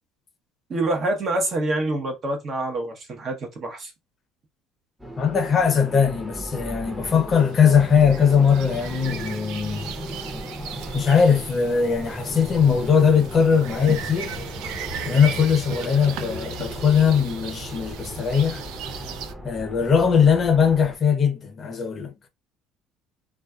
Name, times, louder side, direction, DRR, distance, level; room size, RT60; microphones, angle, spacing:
voice 1, 0.7-3.9, right 2 dB, 45° right, 0.9 m, -26 dB
sound 1, 5.0-21.0, equal, 5° right, 0.8 m, -36 dB
voice 2, 5.2-9.9 10.9-14.3 15.0-18.6 19.4-22.1, left 6 dB, 40° left, 0.6 m, -20 dB
sound 2, 7.4-19.3, right 8 dB, 75° right, 0.4 m, -37 dB
2.4 x 2.3 x 2.3 m
supercardioid pair, 90°, 0 cm